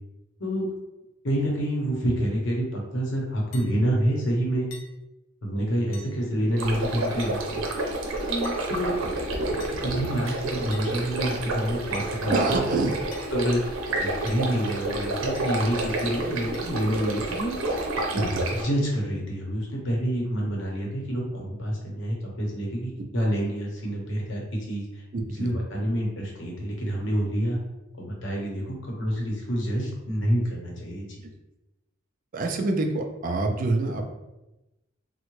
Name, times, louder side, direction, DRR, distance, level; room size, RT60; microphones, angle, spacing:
voice 1, 1.2-4.7 5.4-7.6 8.3-8.9 9.5-12.7 13.3-13.6 14.0-17.5 18.1-25.0 25.3-27.6 28.0-31.1, equal, 65° left, -1 dB, 0.8 m, -28 dB
sound 1, 3.5-3.7 4.7-4.9 5.9-6.1 7.2-7.4 8.4-8.6 9.6-9.8 10.7-10.9 11.9-12.1 13.1-13.3 14.3-14.5 15.4-15.5 16.5-16.6, left 3 dB, 85° left, 0.5 m, -45 dB
sound 2, 6.6-18.6, right 2 dB, 90° right, 0.6 m, -29 dB
voice 2, 12.3-12.9 18.1-18.4 25.1-25.5 32.3-34.2, right 2 dB, 40° right, 4 dB, 0.4 m, -26 dB
3.5 x 2.1 x 3.0 m, 0.97 s
head